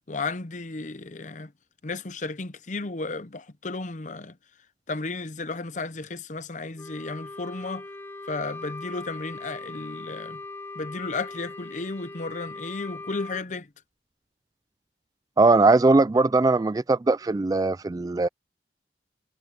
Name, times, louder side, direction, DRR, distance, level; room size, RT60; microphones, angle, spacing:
voice 1, 0.1-1.5 1.8-4.3 4.9-7.8 8.3-10.4 10.8-13.7, left 3 dB, 45° left, 0.8 m, -33 dB
Wind instrument woodwind instrument, 6.8-13.4, left 2 dB, 10° left, 1.0 m, -40 dB
voice 2, 15.4-18.3, right 3 dB, 20° right, 0.3 m, -20 dB
head